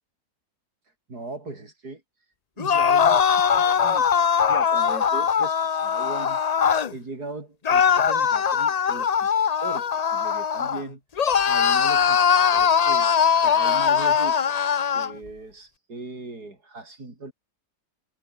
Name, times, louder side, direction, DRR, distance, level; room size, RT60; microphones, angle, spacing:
voice 1, 1.1-2.0 2.6-6.4 6.9-9.1 9.4-11.0 11.4-12.2 12.5-13.1 13.4-14.5 14.9-17.3, right 3 dB, 85° right, 5.7 m, -38 dB
sound 1, 2.6-6.9 7.6-10.8 11.2-15.1, left 7 dB, 70° left, 0.3 m, -21 dB
omnidirectional pair, 1.6 m